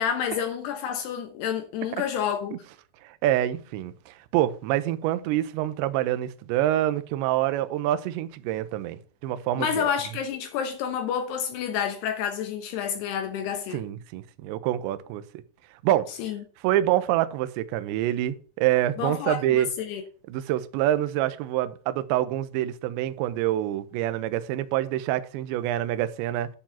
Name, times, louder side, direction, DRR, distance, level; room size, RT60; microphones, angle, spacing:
voice 1, 0.0-2.5 9.6-13.9 16.2-16.4 19.0-20.0, left 8 dB, 75° left, 2.5 m, -29 dB
voice 2, 3.2-9.0 9.2-9.9 13.7-15.2 15.8-16.1 16.6-19.7 20.3-26.5, right 13 dB, 85° right, 2.6 m, -26 dB
10.5 x 4.7 x 7.1 m
omnidirectional pair, 5.9 m